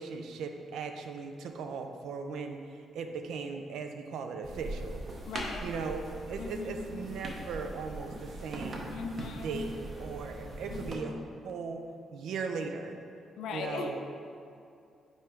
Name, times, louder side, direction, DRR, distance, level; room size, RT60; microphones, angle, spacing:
voice 1, 0.0-2.6 2.9-5.0 5.6-8.9 9.3-11.8 12.1-13.0 13.5-14.0, right 5 dB, 85° right, 5 dB, 0.5 m, -38 dB
sound 1, 4.4-11.0, right 1 dB, 35° right, 0.8 m, -41 dB
voice 2, 5.3-5.6 6.4-7.1 8.9-9.6 10.7-11.2 13.4-14.0, left 5 dB, 85° left, 4 dB, 0.5 m, -39 dB
5.5 x 4.8 x 4.5 m, 2.5 s
cardioid pair, 175°, 0 cm